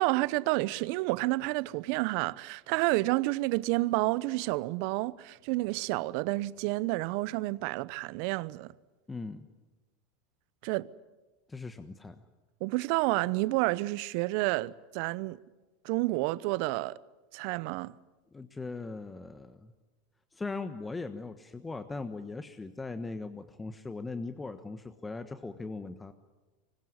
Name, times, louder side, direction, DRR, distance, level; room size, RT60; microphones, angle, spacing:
voice 1, 0.0-8.7 10.6-10.9 12.6-15.4 15.8-17.0 17.3-17.9, right 20 dB, 60° right, 0.8 m, -30 dB
voice 2, 9.1-9.5 11.5-12.2 18.3-19.7 20.3-26.1, left 3 dB, 15° left, 1.3 m, -39 dB
25.0 x 21.5 x 9.8 m
hypercardioid pair, 95°, 0 cm